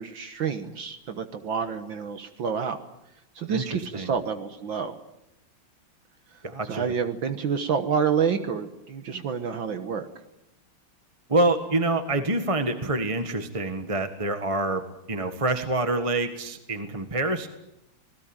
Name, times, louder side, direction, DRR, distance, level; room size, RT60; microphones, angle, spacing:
voice 1, 0.0-2.8 3.4-5.0 6.3-6.4 6.7-10.1, right 6 dB, 65° right, 8 dB, 2.0 m, -28 dB
voice 2, 3.5-4.1 6.4-6.9 11.3-17.5, right 2 dB, 15° right, 7 dB, 1.4 m, -26 dB
26.0 x 20.0 x 9.0 m, 0.87 s
omnidirectional pair, 2.3 m